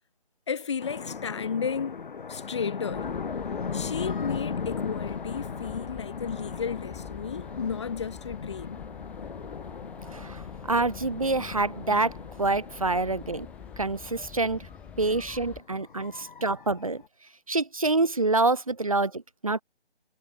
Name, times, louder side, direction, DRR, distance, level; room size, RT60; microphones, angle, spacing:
voice 1, 0.5-3.1 3.7-8.8, left 6 dB, 25° left, 1.0 m, -33 dB
sound 1, 0.8-17.1, left 5 dB, 50° left, 0.7 m, -38 dB
sound 2, 2.9-15.6, left 8 dB, 5° left, 1.4 m, -47 dB
voice 2, 10.1-13.5 13.8-14.7 15.0-17.0 17.5-19.6, right 3 dB, 35° right, 0.5 m, -27 dB
figure-of-eight pair, 155°, 33 cm